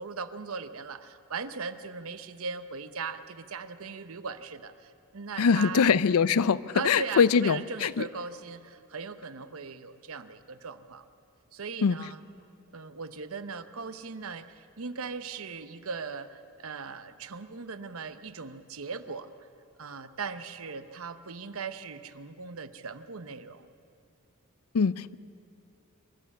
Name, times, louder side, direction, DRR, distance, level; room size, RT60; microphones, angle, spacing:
voice 1, 0.0-5.9 6.7-11.0 11.5-12.2 12.7-19.3 19.8-23.7, right 5 dB, 75° right, 12 dB, 0.8 m, -39 dB
voice 2, 5.4-8.0 11.8-12.0 24.7-25.1, left 6 dB, 85° left, 18 dB, 0.5 m, -23 dB
25.5 x 12.5 x 8.4 m, 2.5 s
head